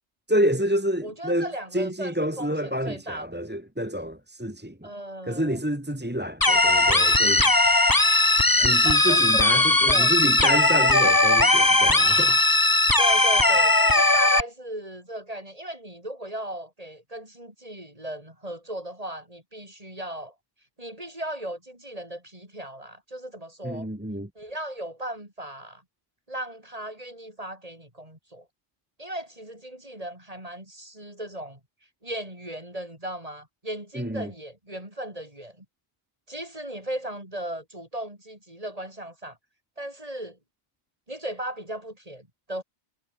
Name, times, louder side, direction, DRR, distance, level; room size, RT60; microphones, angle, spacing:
voice 1, 0.3-4.9 5.3-7.5 8.6-12.4 23.6-24.3 33.9-34.3, equal, 10° right, 1.9 m, -28 dB
voice 2, 1.0-3.4 4.8-5.6 8.6-9.4 9.9-10.1 13.0-20.3 20.8-23.9 24.3-25.8 26.3-28.5 29.0-31.6 32.0-35.6 36.3-39.4 39.8-40.4 41.1-42.6, right 1 dB, 25° right, 6.5 m, -37 dB
sound 1, 6.4-14.4, left 2 dB, 15° left, 1.5 m, -19 dB
omnidirectional pair, 1.4 m